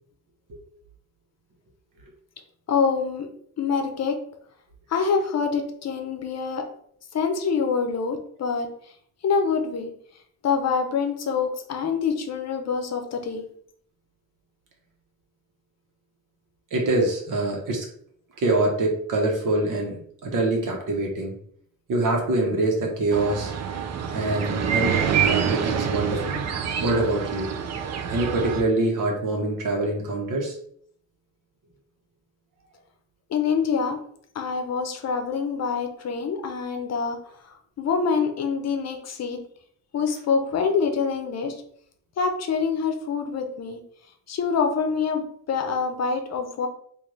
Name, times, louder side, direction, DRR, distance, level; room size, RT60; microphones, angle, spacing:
voice 1, 2.7-3.3 3.6-4.2 4.9-6.6 7.1-8.7 9.2-9.9 10.4-13.4 33.3-34.0 34.3-37.2 37.4-39.4 39.9-41.6 42.2-43.8 44.3-46.7, left 5 dB, 55° left, 5 dB, 0.6 m, -25 dB
voice 2, 16.7-17.8 18.4-21.3 21.9-23.5 24.1-26.4 26.8-27.5 28.1-30.6, right 2 dB, 90° right, 1 dB, 1.1 m, -25 dB
sound 1, 23.1-28.6, right 7 dB, 55° right, 0.5 m, -26 dB
3.2 x 2.5 x 3.9 m, 0.64 s
wide cardioid pair, 155°, 31 cm